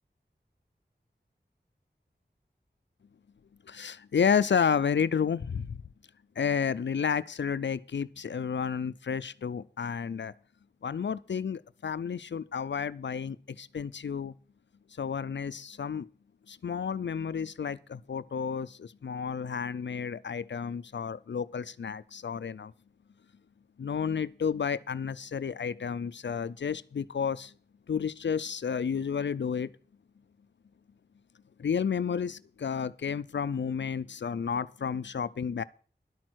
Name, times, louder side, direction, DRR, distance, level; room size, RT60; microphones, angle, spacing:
voice 1, 3.6-5.8 6.4-10.3 10.8-14.3 14.9-16.1 16.5-22.7 23.8-27.5 27.9-29.7 31.6-35.6, left 6 dB, 80° left, 0.5 m, -31 dB
11.5 x 8.8 x 6.2 m
wide cardioid pair, 55°, 18 cm